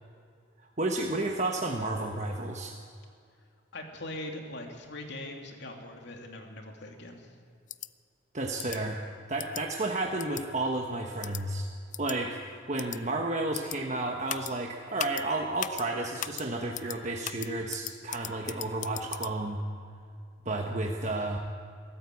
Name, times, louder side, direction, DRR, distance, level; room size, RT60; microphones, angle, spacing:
voice 1, 0.6-2.8 8.3-9.0 9.3-11.7 12.0-19.6 20.4-21.4, right 2 dB, 40° right, 1 dB, 1.3 m, -32 dB
voice 2, 3.7-7.3, left 1 dB, 65° left, 2 dB, 2.9 m, -41 dB
sound 1, 7.7-7.9 8.6-8.8 9.4-9.6 10.2-10.4 11.2-11.4 11.9-12.2 12.8-13.0 13.5-13.8 14.3-14.5 15.0-15.2 15.6-15.8 16.2-16.4 16.7-17.0 17.2-19.3, left 11 dB, 40° left, 0.5 m, -37 dB
23.0 x 14.5 x 8.5 m, 2.3 s
head